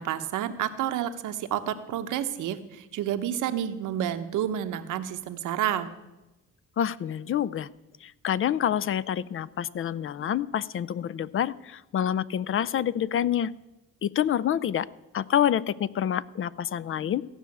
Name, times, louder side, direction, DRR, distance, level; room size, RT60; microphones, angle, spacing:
voice 1, 0.0-5.9, right 10 dB, 85° right, 9 dB, 1.0 m, -30 dB
voice 2, 6.8-7.7 8.0-13.5 14.0-14.9 15.1-17.2, left 10 dB, 45° left, 19 dB, 0.4 m, -27 dB
15.0 x 5.7 x 8.4 m, 1.0 s
cardioid pair, 90°, 30 cm